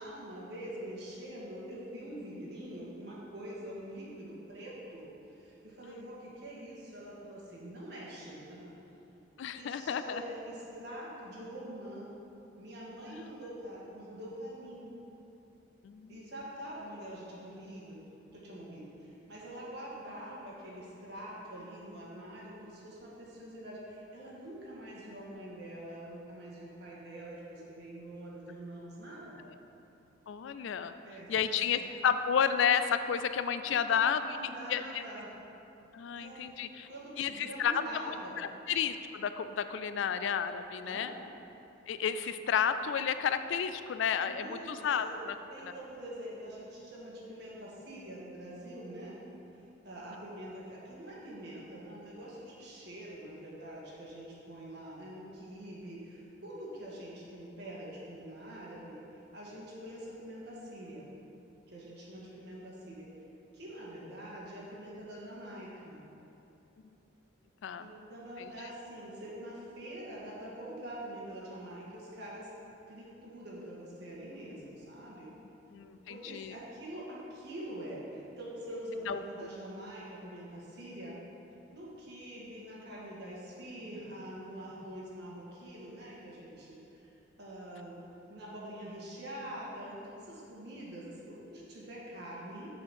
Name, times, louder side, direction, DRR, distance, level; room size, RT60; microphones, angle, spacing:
voice 1, 0.0-8.7 9.5-12.1 12.6-15.0 16.1-18.0 18.3-29.4 31.0-31.8 33.6-35.3 36.2-36.4 36.9-38.4 40.8-41.1 44.2-45.2 45.5-49.2 49.8-61.1 61.7-63.1 63.5-66.0 67.8-72.5 72.9-75.3 76.1-81.1 81.7-88.0 88.3-90.0 90.3-92.7, right 1 dB, 55° right, -6 dB, 1.8 m, -45 dB
voice 2, 9.4-10.2 15.8-16.2 30.3-30.9 31.3-34.4 34.7-35.0 35.9-36.9 37.2-41.1 41.9-45.1 67.6-67.9 75.7-76.5 79.1-79.2, left 7 dB, 70° left, 11 dB, 0.3 m, -31 dB
7.1 x 4.3 x 6.3 m, 2.9 s
head